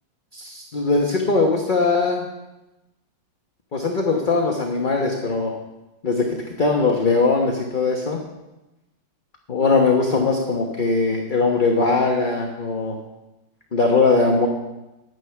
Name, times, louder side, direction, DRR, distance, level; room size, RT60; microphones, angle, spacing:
voice 1, 0.3-2.3 3.7-5.5 6.0-8.2 9.5-13.0 13.7-14.5, left 3 dB, 35° left, 1 dB, 1.0 m, -20 dB
10.5 x 9.8 x 5.8 m, 1.0 s
omnidirectional pair, 2.0 m